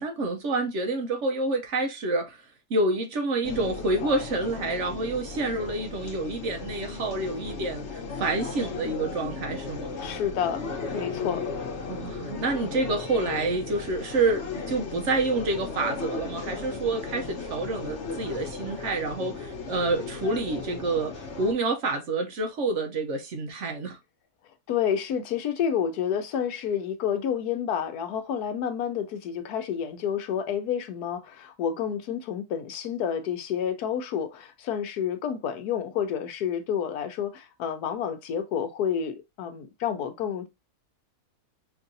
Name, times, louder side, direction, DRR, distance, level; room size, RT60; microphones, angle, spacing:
voice 1, 0.0-2.4 2.7-10.0 11.9-24.0, right 2 dB, 60° right, 1.0 m, -28 dB
sound 1, 3.4-21.5, left 4 dB, 55° left, 1.1 m, -36 dB
voice 2, 10.0-11.4 24.7-40.5, left 8 dB, 90° left, 1.3 m, -29 dB
5.3 x 2.5 x 2.6 m
omnidirectional pair, 1.6 m